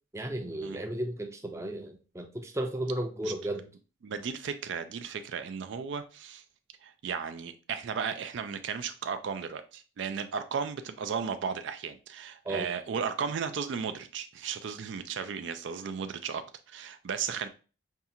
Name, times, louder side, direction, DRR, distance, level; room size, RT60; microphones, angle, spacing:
voice 1, 0.1-3.6 12.4-12.7, right 1 dB, 15° right, 0.5 m, -34 dB
voice 2, 4.0-6.4 6.8-17.5, right 6 dB, 65° right, 0.4 m, -35 dB
5.4 x 2.4 x 2.7 m
head